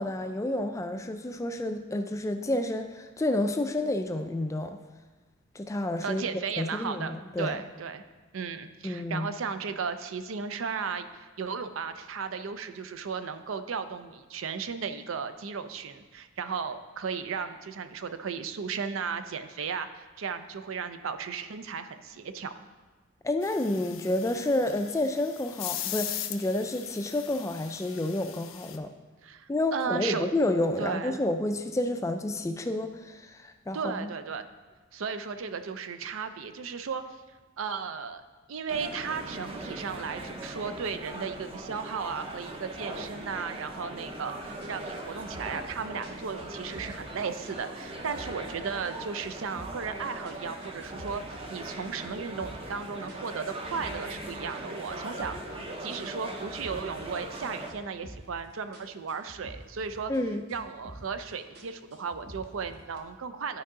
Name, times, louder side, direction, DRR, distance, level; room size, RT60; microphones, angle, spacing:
voice 1, 0.0-4.8 5.5-6.2 6.6-7.6 8.8-9.3 23.2-28.9 29.5-34.1 60.1-60.5, left 1 dB, 15° left, 7 dB, 0.3 m, -30 dB
voice 2, 6.0-8.0 8.3-22.6 29.2-30.3 30.8-31.2 33.7-34.4 34.9-37.2 37.6-38.2 38.5-55.4 55.8-60.1 60.5-63.6, right 5 dB, 75° right, 10 dB, 0.5 m, -35 dB
sound 1, 23.4-28.8, left 11 dB, 70° left, 0.5 m, -39 dB
sound 2, 38.7-57.7, right 1 dB, 25° right, 0.6 m, -40 dB
sound 3, 44.1-44.3 44.6-47.1 47.4-48.9 49.2-49.9 50.3-52.8 53.1-55.6 55.9-58.5 58.7-60.2 60.5-61.2 61.6-63.0, equal, 55° right, 1.1 m, -48 dB
12.0 x 4.7 x 3.7 m, 1.3 s
head